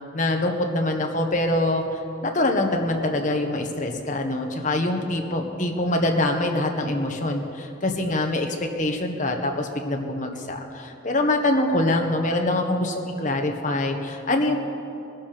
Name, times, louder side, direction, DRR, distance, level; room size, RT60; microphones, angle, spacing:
voice 1, 0.1-14.6, left 1 dB, 40° left, 3 dB, 1.4 m, -24 dB
20.5 x 11.5 x 5.2 m, 2.7 s
head